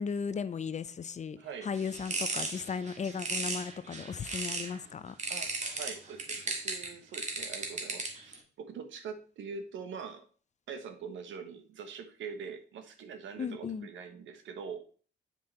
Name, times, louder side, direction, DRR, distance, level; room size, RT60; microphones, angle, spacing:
voice 1, 0.0-1.4 1.6-5.1 13.4-13.9, left 6 dB, 35° left, 0.6 m, -36 dB
voice 2, 1.4-1.7 5.3-5.5 5.8-10.3 10.7-15.0, right 6 dB, 75° right, 1.3 m, -43 dB
sound 1, 1.7-4.8 5.2-8.3, right 3 dB, 35° right, 1.7 m, -36 dB
7.7 x 5.1 x 4.2 m
cardioid pair, 90°, 20 cm